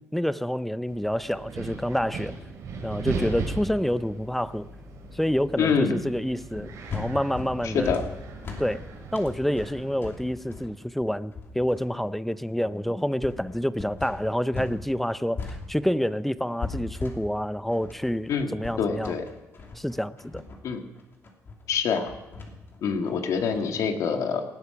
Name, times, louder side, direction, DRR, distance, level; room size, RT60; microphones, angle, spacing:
voice 1, 0.1-2.4 2.8-4.7 5.1-8.0 8.6-19.2 19.8-20.4, equal, 5° left, 15 dB, 0.5 m, -28 dB
Wind, 0.9-10.4, right 3 dB, 85° right, 5.7 m, -38 dB
voice 2, 5.6-6.0 7.6-8.0 18.3-19.2 20.6-20.8 21.7-22.1 22.8-24.4, left 6 dB, 80° left, 5 dB, 1.8 m, -26 dB
sound 1, 6.5-14.8 15.1-23.8, left 4 dB, 45° left, 2.7 m, -39 dB
19.0 x 11.5 x 5.9 m, 1.1 s
cardioid pair, 130°, 5 cm